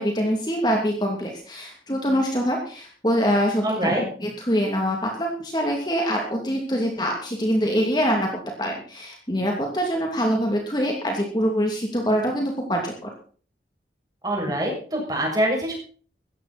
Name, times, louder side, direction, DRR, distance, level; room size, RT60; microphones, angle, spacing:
voice 1, 0.0-8.3 8.6-13.1, equal, 25° left, 1 dB, 2.7 m, -24 dB
voice 2, 3.6-4.0 14.2-15.7, right 1 dB, 20° right, -1 dB, 6.9 m, -24 dB
16.5 x 14.0 x 4.3 m, 0.42 s
head